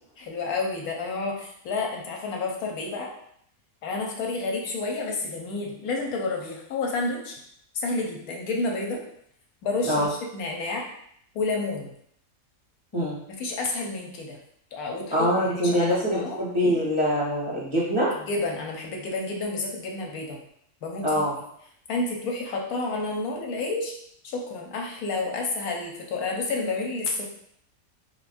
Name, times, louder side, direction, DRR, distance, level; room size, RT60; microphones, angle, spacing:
voice 1, 0.2-3.1 3.8-7.4 7.7-9.0 9.6-10.1 10.3-10.9 11.3-11.9 13.4-14.4 14.7-15.3 15.5-16.4 18.3-20.4 20.8-21.2 21.9-23.9 24.2-27.3, left 3 dB, 90° left, 0 dB, 1.2 m, -30 dB
voice 2, 15.1-18.1 21.0-21.3, equal, 30° left, -8 dB, 0.6 m, -24 dB
5.6 x 2.0 x 2.5 m, 0.69 s
omnidirectional pair, 1.5 m